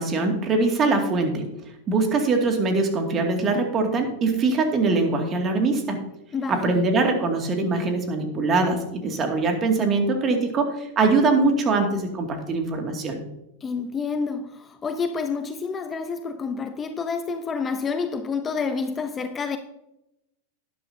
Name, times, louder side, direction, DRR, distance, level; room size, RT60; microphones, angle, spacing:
voice 1, 0.0-6.1 6.5-13.2, right 3 dB, 30° right, 2.4 m, -23 dB
voice 2, 6.3-6.8 13.6-19.6, left 5 dB, 20° left, 0.8 m, -28 dB
11.5 x 10.5 x 2.8 m
hypercardioid pair, 110°, 0 cm